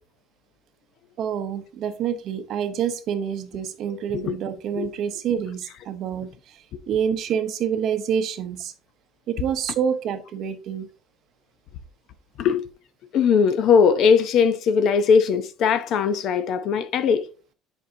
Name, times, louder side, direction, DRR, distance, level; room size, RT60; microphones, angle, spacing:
voice 1, 1.2-6.3 6.9-8.7 9.3-10.9, right 8 dB, 45° right, 0.7 m, -27 dB
voice 2, 3.9-4.3 4.7-4.9 12.4-12.7 13.1-17.3, left 6 dB, 45° left, 0.6 m, -20 dB
10.0 x 5.3 x 2.7 m
cardioid pair, 175°, 0 cm